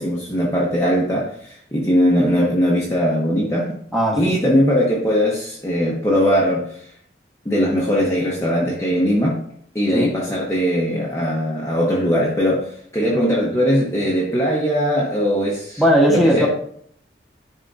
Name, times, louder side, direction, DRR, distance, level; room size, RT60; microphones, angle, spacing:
voice 1, 0.0-3.8 4.2-6.9 7.4-9.4 9.7-15.8 16.1-16.5, equal, 15° left, -5 dB, 0.9 m, -20 dB
voice 2, 3.9-4.3 9.9-10.1 15.8-16.5, equal, ahead, -3 dB, 1.3 m, -17 dB
11.0 x 3.6 x 2.7 m, 0.63 s
head